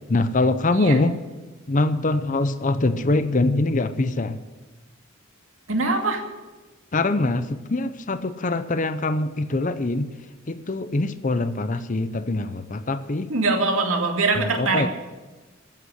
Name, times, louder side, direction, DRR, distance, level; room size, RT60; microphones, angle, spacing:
voice 1, 0.1-1.2 1.7-4.4 6.9-10.1 10.5-13.3 14.6-14.9, left 2 dB, 40° left, 12 dB, 0.7 m, -23 dB
voice 2, 5.7-6.2 13.3-14.9, right 3 dB, 85° right, 3 dB, 2.4 m, -23 dB
14.5 x 8.2 x 10.0 m, 1.2 s
head